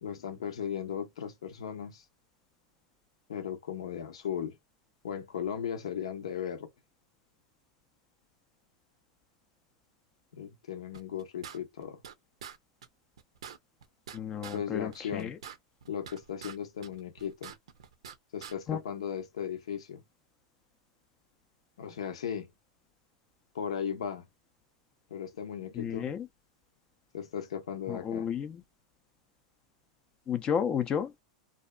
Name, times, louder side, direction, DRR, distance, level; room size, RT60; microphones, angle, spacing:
voice 1, 0.0-2.0 3.3-4.6 5.0-6.7 10.3-12.0 14.5-15.3 15.9-17.5 18.3-20.0 21.8-22.5 23.5-24.3 25.1-26.1 27.1-28.3, left 8 dB, 85° left, 0.7 m, -36 dB
sound 1, 10.9-12.1 12.4-12.6 12.8-12.9 13.2-14.6 14.9-16.6 16.8-18.2 18.4-18.5, right 8 dB, 85° right, 0.5 m, -46 dB
voice 2, 14.1-15.4 18.7-18.8 25.7-26.3 27.9-28.6 30.3-31.1, left 8 dB, 30° left, 0.4 m, -32 dB
2.7 x 2.3 x 2.2 m
hypercardioid pair, 125°, 3 cm